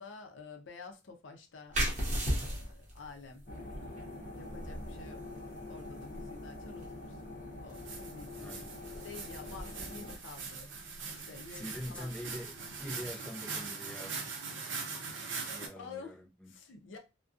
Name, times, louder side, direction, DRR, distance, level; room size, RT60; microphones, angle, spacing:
voice 1, 0.0-1.9 2.3-3.5 4.2-5.3 5.7-7.4 7.6-8.5 8.9-10.7 11.1-12.1 13.9-14.0 15.2-16.2 16.5-17.0, left 4 dB, 90° left, 0.5 m, -50 dB
sound 1, 1.7-13.0, equal, 40° right, 0.8 m, -40 dB
sound 2, 3.5-10.2, left 2 dB, 45° left, 0.6 m, -45 dB
sound 3, 7.7-15.7, right 5 dB, 85° right, 0.5 m, -42 dB
voice 2, 8.3-8.7 11.5-14.1 15.5-16.5, equal, 5° left, 0.4 m, -44 dB
2.5 x 2.2 x 2.4 m
head